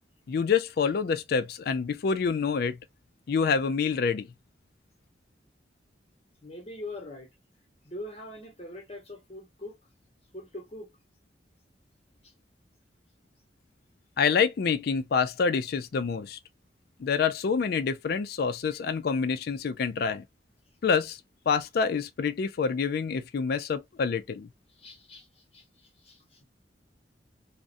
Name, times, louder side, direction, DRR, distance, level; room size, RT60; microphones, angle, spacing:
voice 1, 0.3-2.8 3.3-4.3 14.2-16.4 17.0-20.2 20.8-21.2 21.5-24.5, left 5 dB, 55° left, 0.3 m, -27 dB
voice 2, 6.4-7.3 7.8-9.7 10.3-10.9 24.7-25.3 25.5-26.4, left 1 dB, 35° left, 0.9 m, -42 dB
2.4 x 2.1 x 2.5 m
head